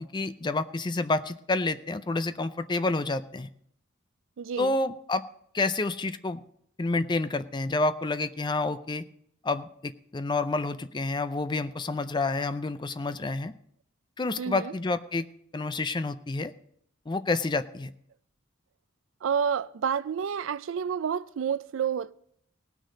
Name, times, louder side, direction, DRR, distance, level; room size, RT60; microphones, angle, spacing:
voice 1, 0.0-3.5 4.6-5.2 5.5-6.4 6.8-9.1 9.4-13.5 14.2-15.3 15.5-16.5 17.1-17.9, left 3 dB, 20° left, 0.5 m, -29 dB
voice 2, 4.4-4.7 14.4-14.7 19.2-22.1, right 7 dB, 70° right, 0.4 m, -29 dB
18.0 x 6.4 x 5.1 m
head